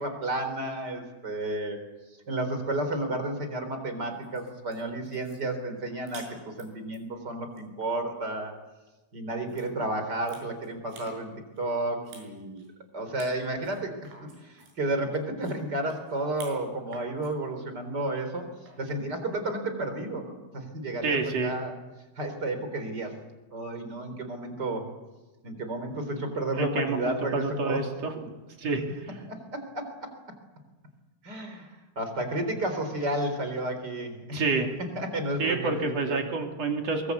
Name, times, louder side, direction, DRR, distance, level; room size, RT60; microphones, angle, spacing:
voice 1, 0.0-1.8 2.3-8.5 9.1-12.6 12.9-18.5 18.8-21.8 22.2-23.1 23.5-24.8 25.4-27.8 29.3-30.1 31.2-34.4 35.0-36.2, right 1 dB, 25° right, 7 dB, 3.7 m, -32 dB
sound 1, 4.0-7.0 7.4-7.9 9.5-9.7 10.0-11.2 11.6-12.3 12.6-12.7 13.2-13.3 13.6-16.6 16.9-17.3 18.6-19.0, right 4 dB, 90° right, 8.7 m, -50 dB
voice 2, 21.0-21.5 26.6-28.2 28.6-29.1 34.3-34.7 35.4-37.1, right 3 dB, 40° right, 3 dB, 2.9 m, -28 dB
23.5 x 23.0 x 8.3 m, 1.1 s
omnidirectional pair, 5.7 m